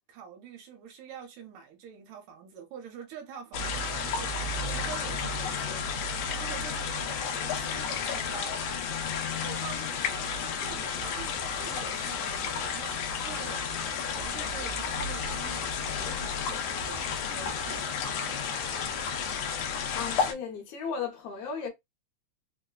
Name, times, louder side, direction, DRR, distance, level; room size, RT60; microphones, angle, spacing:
voice 1, 0.0-5.9 6.3-8.7 9.4-13.7 14.2-18.9, right 7 dB, 75° right, 2.1 m, -46 dB
sound 1, 3.5-20.3, left 5 dB, 85° left, 1.4 m, -32 dB
voice 2, 19.9-21.7, left 6 dB, 70° left, 1.6 m, -35 dB
4.7 x 2.1 x 2.2 m
omnidirectional pair, 3.5 m